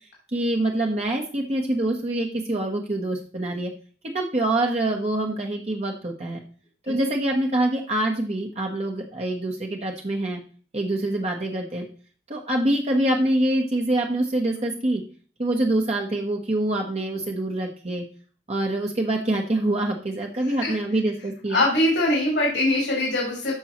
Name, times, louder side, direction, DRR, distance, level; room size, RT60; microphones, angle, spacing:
voice 1, 0.3-3.7 4.0-6.4 6.8-10.4 10.7-11.9 12.3-15.0 15.4-18.0 18.5-21.6, right 1 dB, 35° right, 0 dB, 1.0 m, -25 dB
voice 2, 20.4-20.7 21.5-23.5, left 1 dB, 85° left, -3 dB, 3.1 m, -22 dB
13.0 x 5.4 x 3.0 m, 0.41 s
head